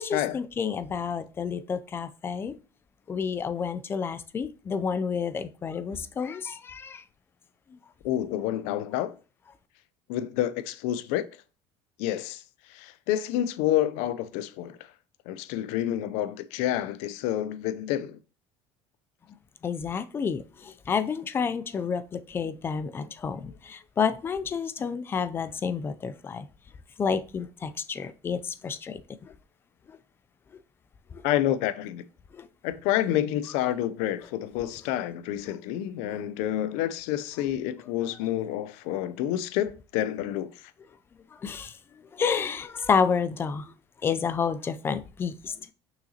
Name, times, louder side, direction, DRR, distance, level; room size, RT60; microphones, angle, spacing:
voice 1, 0.0-2.5 3.1-7.0 19.6-26.5 27.0-29.0 29.9-30.0 31.1-31.2 32.3-32.5 41.4-41.7 42.1-43.7 44.0-45.7, left 6 dB, 20° left, 0.3 m, -30 dB
voice 2, 8.0-9.2 10.1-11.3 12.0-12.4 12.7-14.8 15.3-18.2 31.2-32.0 32.6-40.5, left 12 dB, 85° left, 0.5 m, -28 dB
6.4 x 5.8 x 2.8 m
cardioid pair, 165°, 11 cm